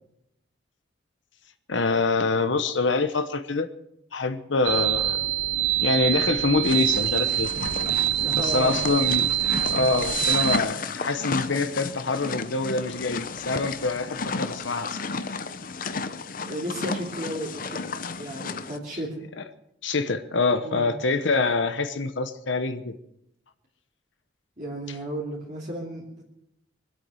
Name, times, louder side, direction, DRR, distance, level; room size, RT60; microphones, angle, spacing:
voice 1, 1.7-3.7 4.1-5.2 5.8-7.7 8.3-9.3 9.6-15.2 19.8-22.9, left 3 dB, 75° left, 9 dB, 1.0 m, -25 dB
sound 1, 4.6-10.6, right 13 dB, 65° right, 0.6 m, -25 dB
sound 2, 6.6-18.8, left 4 dB, 45° left, 0.7 m, -33 dB
voice 2, 8.2-8.9 16.4-17.8 18.2-19.1 20.6-21.1 24.6-26.2, equal, 40° right, -5 dB, 2.8 m, -33 dB
23.5 x 8.5 x 6.3 m, 0.80 s
head